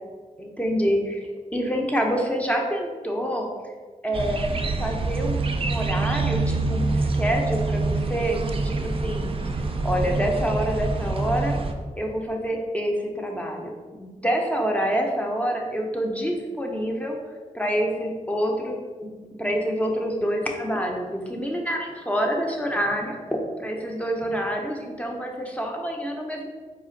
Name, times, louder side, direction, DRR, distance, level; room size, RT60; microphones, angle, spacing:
voice 1, 0.4-3.5 4.0-8.4 8.6-9.3 9.8-11.5 12.0-17.2 17.5-23.2 23.6-26.5, equal, 10° left, 1 dB, 0.7 m, -27 dB
sound 1, 4.1-11.7, right 3 dB, 40° right, 0.4 m, -26 dB
4.2 x 2.4 x 3.8 m, 1.5 s
cardioid pair, 60°, 14 cm